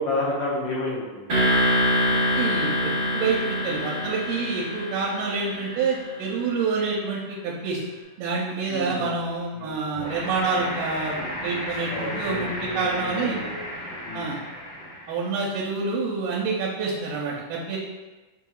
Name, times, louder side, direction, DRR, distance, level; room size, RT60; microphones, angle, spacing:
voice 1, 0.0-1.4 8.7-9.2 9.6-9.8 11.9-13.6 14.0-14.3, left 1 dB, 80° left, -7 dB, 2.3 m, -30 dB
sound 1, 1.3-6.2, equal, 40° right, 1.5 m, -25 dB
voice 2, 2.1-7.8 8.2-13.4 14.1-14.4 15.1-17.8, right 4 dB, 90° right, -5 dB, 2.2 m, -27 dB
sound 2, 9.9-15.4, equal, 60° left, 1.7 m, -34 dB
5.8 x 2.8 x 2.3 m, 1.2 s
omnidirectional pair, 3.7 m